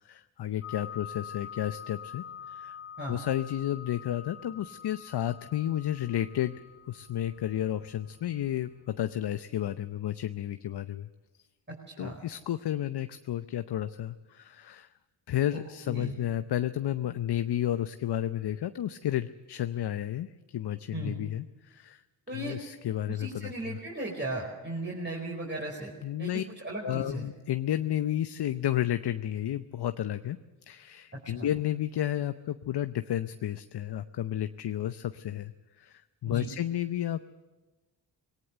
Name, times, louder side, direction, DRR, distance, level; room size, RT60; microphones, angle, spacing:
voice 1, 0.0-2.8 3.1-6.5 6.9-11.1 12.0-14.9 15.3-22.0 22.3-23.8 26.0-26.4 26.8-37.2, left 11 dB, 55° left, 11 dB, 0.8 m, -32 dB
sound 1, 0.6-9.4, left 8 dB, 25° left, 2.4 m, -46 dB
voice 2, 11.7-12.2 15.5-16.2 20.9-21.1 22.3-22.6 23.1-25.9 26.2-27.3 31.1-31.5 36.2-36.5, right 1 dB, 25° right, -3 dB, 5.0 m, -37 dB
19.5 x 18.0 x 7.9 m, 1.2 s
supercardioid pair, 50°, 47 cm